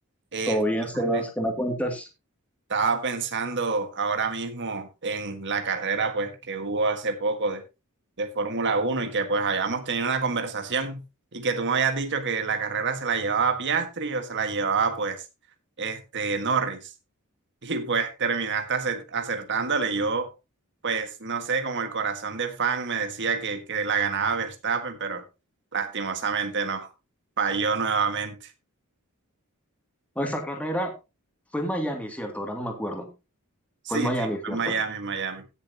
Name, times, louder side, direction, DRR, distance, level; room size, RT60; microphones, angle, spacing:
voice 1, 0.5-2.1 30.2-30.9 31.5-33.1 33.9-34.7, equal, 5° left, 2.5 m, -28 dB
voice 2, 2.7-7.6 8.2-11.0 11.3-15.2 15.8-16.9 17.6-20.3 20.8-25.2 25.7-26.9 27.4-28.4 33.9-34.1 34.4-35.4, right 5 dB, 55° right, 1.6 m, -27 dB
17.0 x 7.0 x 2.9 m
head